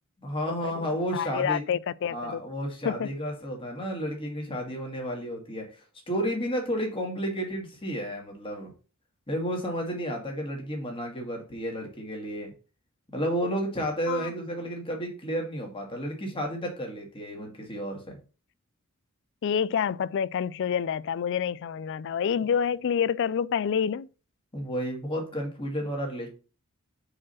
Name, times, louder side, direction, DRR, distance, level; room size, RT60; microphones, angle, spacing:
voice 1, 0.2-1.6 2.1-8.7 9.3-12.5 13.1-18.2 24.5-26.3, equal, 25° left, 2.0 m, -32 dB
voice 2, 1.1-2.4 2.8-3.1 14.1-14.3 19.4-24.1, left 7 dB, 55° left, 0.3 m, -28 dB
4.9 x 4.8 x 5.6 m
head